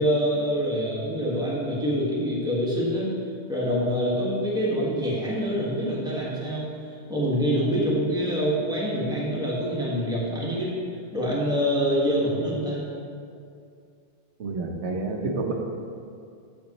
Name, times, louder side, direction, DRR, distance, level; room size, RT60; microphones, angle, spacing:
voice 1, 0.0-3.1 3.5-6.7 7.1-10.7 11.1-12.8, equal, 5° right, -7 dB, 1.6 m, -25 dB
voice 2, 14.4-15.5, right 3 dB, 80° right, 2 dB, 1.1 m, -29 dB
8.6 x 6.4 x 3.0 m, 2.4 s
omnidirectional pair, 1.2 m